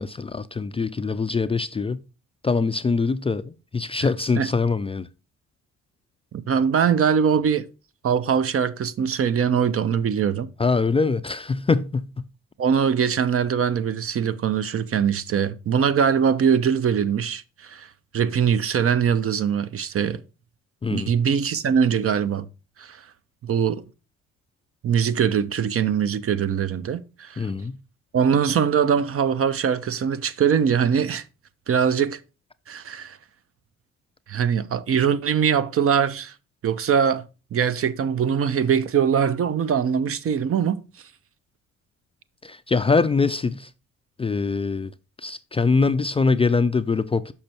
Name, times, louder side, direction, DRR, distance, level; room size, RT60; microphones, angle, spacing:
voice 1, 0.0-2.0 2.4-3.4 3.7-5.1 10.6-12.1 20.8-21.1 27.4-27.7 42.4-43.7 44.2-44.9 45.2-47.3, left 4 dB, 20° left, 0.4 m, -23 dB
voice 2, 6.3-7.7 8.0-10.5 12.6-17.9 18.1-20.2 20.9-22.5 22.8-23.0 23.4-23.8 24.8-27.5 28.1-31.2 31.7-32.2 32.7-33.2 34.3-36.3 36.6-40.8, right 7 dB, 50° right, 0.6 m, -22 dB
6.6 x 5.5 x 4.3 m
cardioid pair, 90°, 30 cm